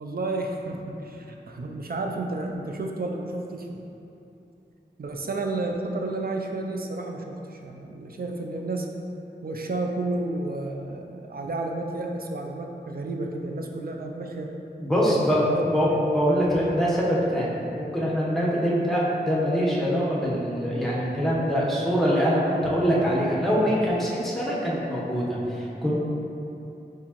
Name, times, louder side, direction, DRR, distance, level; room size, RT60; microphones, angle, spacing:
voice 1, 0.0-3.8 5.0-8.9 9.4-14.5 15.2-15.6 15.9-16.0, right 2 dB, 55° right, 1 dB, 0.4 m, -31 dB
voice 2, 14.8-15.5 15.7-26.0, equal, ahead, -6 dB, 0.9 m, -24 dB
4.2 x 3.6 x 2.9 m, 2.9 s
wide cardioid pair, 60°, 18 cm